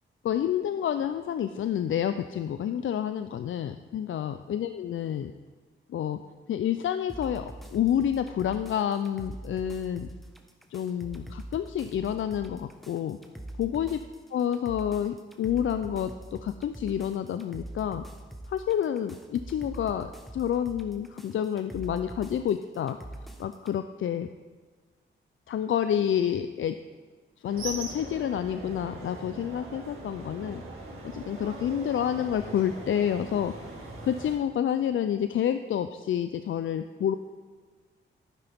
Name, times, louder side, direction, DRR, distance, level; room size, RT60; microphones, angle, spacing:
voice 1, 0.2-5.3 5.9-6.2 6.5-10.1 10.7-13.2 13.6-14.0 14.3-18.0 18.5-23.0 23.4-24.3 25.5-26.8 27.4-30.6 31.0-33.5 34.0-37.1, left 9 dB, 70° left, 10 dB, 0.5 m, -29 dB
sound 1, 7.1-23.8, right 1 dB, ahead, 1.3 m, -44 dB
sound 2, 27.4-34.3, right 2 dB, 85° right, 2.4 m, -41 dB
11.5 x 9.8 x 3.6 m, 1.5 s
cardioid pair, 55°, 21 cm